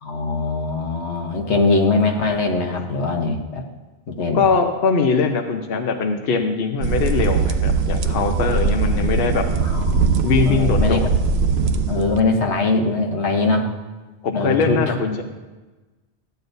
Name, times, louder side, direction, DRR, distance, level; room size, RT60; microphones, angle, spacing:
voice 1, 0.0-3.6 4.1-4.4 9.6-11.1 11.9-13.7 14.3-15.2, left 3 dB, 80° left, 3 dB, 1.4 m, -22 dB
voice 2, 4.3-9.5 10.2-11.1 14.2-15.2, left 5 dB, 65° left, 5 dB, 0.9 m, -21 dB
sound 1, 6.8-12.2, right 4 dB, 70° right, 0.9 m, -20 dB
14.0 x 9.4 x 2.6 m, 1.2 s
omnidirectional pair, 1.1 m